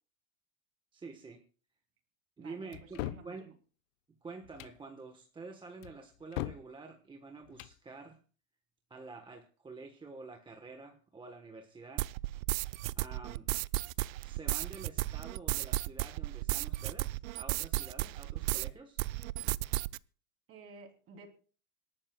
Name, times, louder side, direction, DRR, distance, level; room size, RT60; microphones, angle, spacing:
voice 1, 0.9-1.4 2.4-3.5 4.2-8.2 8.9-12.1 13.0-13.5 14.2-19.0, right 3 dB, 10° right, 5 dB, 1.2 m, -48 dB
voice 2, 2.4-3.5 20.5-21.3, right 4 dB, 30° right, 4 dB, 3.2 m, -53 dB
sound 1, 2.7-3.3 4.4-4.8 5.8-6.7 7.4-7.8, left 15 dB, 55° left, 0.8 m, -40 dB
sound 2, 12.0-18.7 19.0-20.0, right 18 dB, 60° right, 0.5 m, -34 dB
26.5 x 12.0 x 2.3 m, 0.39 s
supercardioid pair, 135°, 47 cm